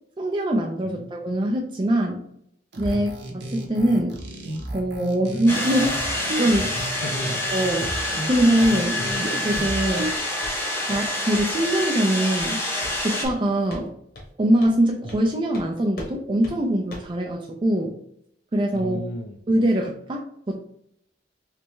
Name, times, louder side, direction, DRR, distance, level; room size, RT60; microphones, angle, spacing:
voice 1, 0.2-2.2 2.8-4.2 4.7-6.7 7.5-7.9 8.3-9.0 9.4-10.1 10.9-12.6 13.0-13.9 14.4-17.9 18.5-19.0 19.5-20.6, right 1 dB, 30° right, 1 dB, 0.4 m, -23 dB
sound 1, 2.7-10.1, right 1 dB, 70° right, 0.7 m, -33 dB
sound 2, 5.5-13.3, left 1 dB, 15° left, 0.7 m, -27 dB
voice 2, 6.7-7.4 9.0-9.2 18.7-19.4, left 2 dB, 80° left, 6 dB, 0.5 m, -35 dB
Walk footsteps, 8.6-8.8 9.0-9.3 9.5-9.7 10.0-10.6 10.9-11.1 11.3-11.6 12.4-12.5 12.8-13.4 13.7-13.9 14.1-14.3 14.6-14.8 15.1-15.2 15.5-15.7 16.0-16.1 16.4-16.6 16.9-17.1, left 1 dB, 60° left, 1.0 m, -39 dB
3.3 x 3.1 x 3.1 m, 0.71 s
head